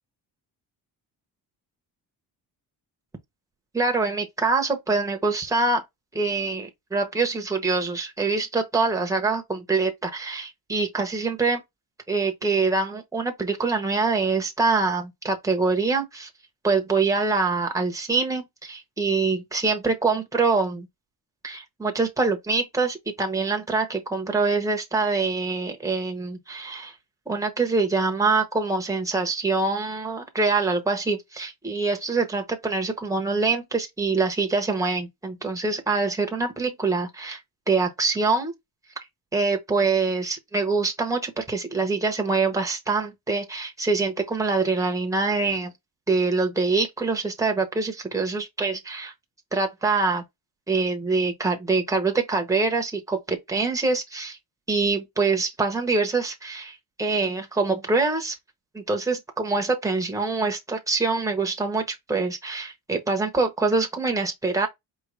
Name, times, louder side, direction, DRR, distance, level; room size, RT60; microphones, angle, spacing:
voice 1, 3.7-5.8 6.1-11.6 12.1-16.3 16.6-20.9 21.4-26.9 27.3-37.4 37.7-38.5 39.3-45.7 46.1-49.1 49.5-50.2 50.7-54.4 54.7-58.4 58.7-64.7, right 3 dB, 10° right, 0.9 m, -25 dB
4.6 x 3.0 x 3.1 m
wide cardioid pair, 165°, 42 cm